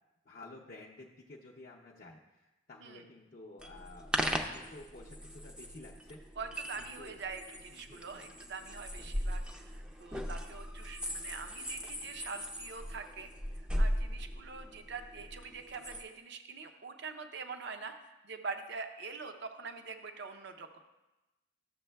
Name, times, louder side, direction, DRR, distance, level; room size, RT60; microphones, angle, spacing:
voice 1, 0.2-6.4 6.8-7.2 7.7-8.2, left 2 dB, 45° left, -3 dB, 0.5 m, -52 dB
sound 1, 3.6-16.0, equal, 5° right, 0.4 m, -38 dB
voice 2, 6.4-13.3 13.8-20.8, right 4 dB, 60° right, 6 dB, 0.6 m, -44 dB
13.0 x 7.1 x 2.2 m, 1.0 s
head